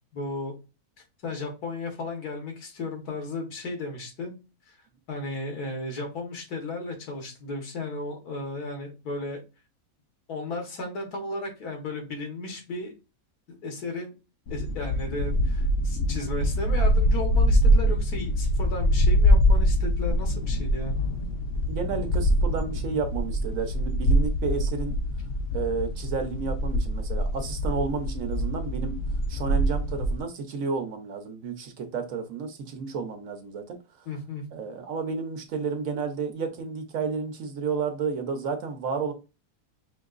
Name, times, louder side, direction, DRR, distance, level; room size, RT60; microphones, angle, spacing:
voice 1, 0.1-0.5 1.2-4.4 4.7-4.8 5.1-9.4 10.3-12.9 13.5-14.1 14.5-21.0 34.1-34.4, left 2 dB, 80° left, 1.8 m, -34 dB
sound 1, 14.5-30.2, equal, 60° left, 0.7 m, -24 dB
voice 2, 21.7-25.0 25.5-29.0 29.3-33.8 34.5-39.1, right 5 dB, 65° right, 1.1 m, -31 dB
5.2 x 2.8 x 2.4 m
omnidirectional pair, 1.6 m